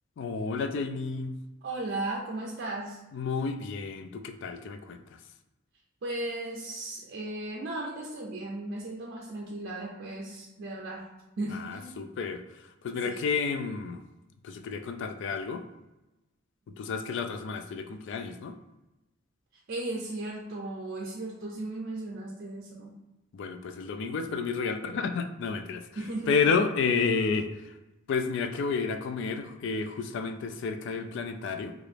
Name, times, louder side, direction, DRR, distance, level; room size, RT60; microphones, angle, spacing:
voice 1, 0.2-1.4 3.1-5.0 11.5-12.4 12.8-14.0 14.4-15.6 16.8-18.5 23.3-25.9 26.3-27.5 28.1-31.7, left 5 dB, 65° left, 8 dB, 0.3 m, -30 dB
voice 2, 1.6-3.0 6.0-11.1 11.4-11.9 13.0-13.2 19.7-22.9 26.0-26.4, right 2 dB, 55° right, -2 dB, 0.5 m, -36 dB
2.9 x 2.5 x 3.2 m, 1.0 s
head